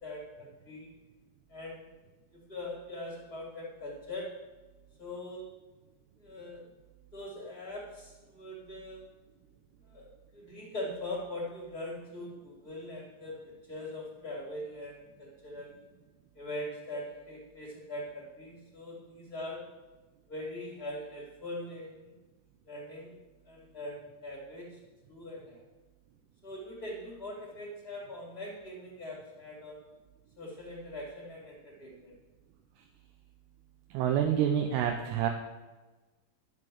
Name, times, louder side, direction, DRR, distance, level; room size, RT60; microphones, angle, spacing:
voice 1, 0.0-0.9 1.5-1.9 2.3-4.3 5.0-5.5 6.2-6.7 7.1-9.0 9.9-10.1 10.3-13.4 13.7-15.9 16.3-19.6 20.3-22.1 22.6-23.1 23.5-24.8 25.1-25.6 26.4-29.8 30.4-32.1, left 1 dB, 30° left, -3 dB, 2.3 m, -41 dB
voice 2, 33.9-35.3, right 9 dB, 85° right, 4 dB, 2.9 m, -27 dB
11.0 x 7.3 x 7.6 m, 1.2 s
omnidirectional pair, 4.7 m